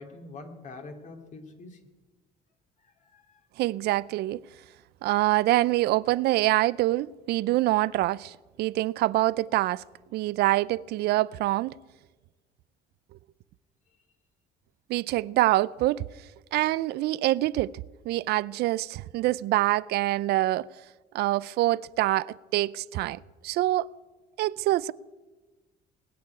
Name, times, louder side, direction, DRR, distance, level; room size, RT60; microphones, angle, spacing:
voice 1, 0.0-1.8 2.8-3.4, left 3 dB, 45° left, 2.5 m, -45 dB
voice 2, 3.6-4.4 5.0-9.8 10.1-11.7 14.9-16.0 16.5-17.7 18.1-20.7 21.1-23.9 24.4-24.9, right 17 dB, 75° right, 0.4 m, -25 dB
20.0 x 6.9 x 9.5 m
cardioid pair, 110°, 17 cm